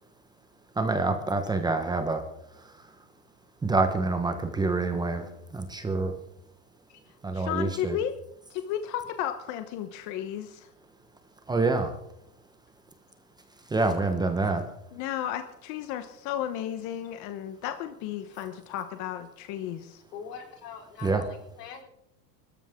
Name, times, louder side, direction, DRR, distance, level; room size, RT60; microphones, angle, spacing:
voice 1, 0.8-2.2 3.6-5.3 5.5-6.1 7.2-8.0 11.5-11.9 13.7-14.6 21.0-21.2, right 3 dB, 10° right, 6 dB, 1.1 m, -26 dB
voice 2, 7.3-8.1 8.5-10.7 14.9-20.0, left 11 dB, 35° left, 9 dB, 1.0 m, -33 dB
voice 3, 20.1-21.8, left 7 dB, 80° left, 2 dB, 4.7 m, -43 dB
23.5 x 13.5 x 3.7 m, 0.78 s
supercardioid pair, 155°, 47 cm